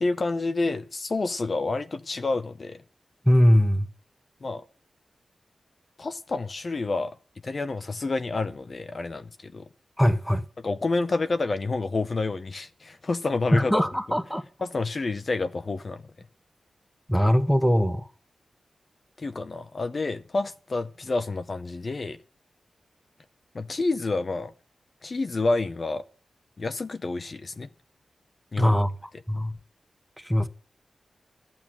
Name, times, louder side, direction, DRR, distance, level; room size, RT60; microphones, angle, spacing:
voice 1, 0.0-2.8 4.4-4.6 6.0-7.1 7.4-9.7 10.6-13.9 14.6-16.0 19.2-22.2 23.5-24.5 25.0-26.0 26.6-27.7 28.5-28.8, left 3 dB, 35° left, 0.7 m, -29 dB
voice 2, 3.3-3.9 10.0-10.4 13.5-14.4 17.1-18.1 28.6-28.9 29.3-29.6 30.2-30.5, equal, ahead, 0.9 m, -21 dB
14.0 x 8.7 x 8.8 m
wide cardioid pair, 175°, 0 cm